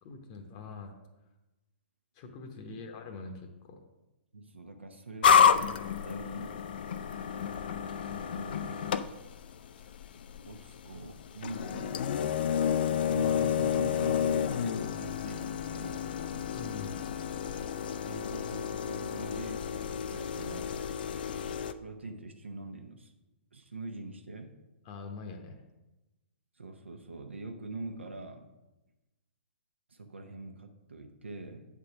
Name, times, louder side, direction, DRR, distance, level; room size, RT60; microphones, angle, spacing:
voice 1, 0.0-0.9 2.1-3.8 16.5-17.0 24.8-25.6, left 4 dB, 35° left, 4 dB, 0.9 m, -44 dB
voice 2, 4.3-6.5 7.3-7.4 8.1-8.8 10.5-12.1 13.1-16.1 18.0-20.8 21.8-23.1 23.5-24.5 26.6-28.5 29.9-31.7, right 2 dB, 75° right, 4 dB, 0.9 m, -43 dB
sound 1, 5.2-21.7, left 7 dB, 50° left, 0.4 m, -30 dB
8.4 x 3.6 x 5.9 m, 1.0 s
figure-of-eight pair, 120°, 6 cm